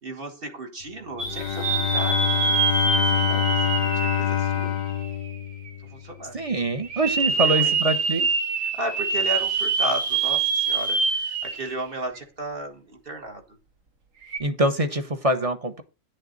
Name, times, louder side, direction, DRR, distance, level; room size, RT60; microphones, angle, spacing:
voice 1, 0.0-2.5 2.9-4.7 5.9-6.4 7.4-7.8 8.7-13.4, right 1 dB, 45° right, 3 dB, 2.0 m, -34 dB
Bowed string instrument, 1.1-6.1, left 10 dB, 60° left, 0.7 m, -26 dB
sound 1, 1.2-5.1 5.7-5.8 6.8-11.8 12.2-12.3 14.2-14.4, right 5 dB, 80° right, 1.8 m, -25 dB
voice 2, 6.3-8.3 14.4-15.8, right 1 dB, 30° right, 8 dB, 1.0 m, -24 dB
10.0 x 7.8 x 4.0 m, 0.29 s
omnidirectional pair, 1.3 m